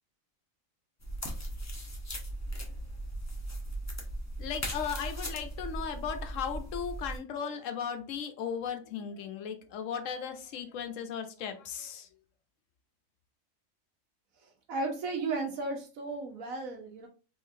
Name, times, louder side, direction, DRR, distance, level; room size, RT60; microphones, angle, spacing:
sound 1, 1.0-7.2, right 1 dB, 15° left, 0.6 m, -38 dB
voice 1, 4.4-12.1, left 7 dB, 70° left, 7 dB, 1.0 m, -36 dB
voice 2, 14.7-17.1, right 3 dB, 85° right, 3 dB, 1.4 m, -34 dB
3.7 x 3.2 x 2.6 m, 0.35 s
omnidirectional pair, 1.4 m